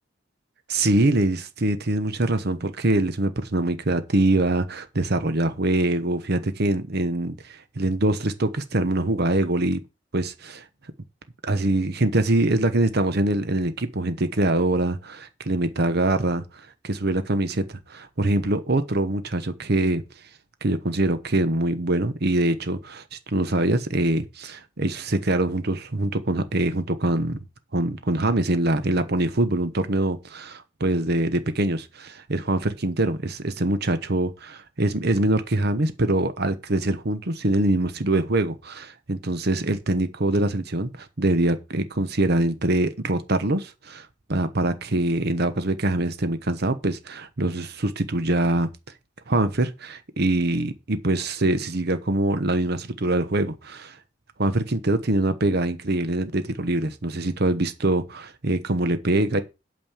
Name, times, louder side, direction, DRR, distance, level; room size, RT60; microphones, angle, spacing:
voice 1, 0.7-9.8 10.1-10.6 11.4-20.0 20.6-27.4 27.7-48.7 49.3-54.0 54.4-59.4, right 2 dB, 60° right, 1.1 m, -24 dB
8.7 x 5.4 x 7.2 m
head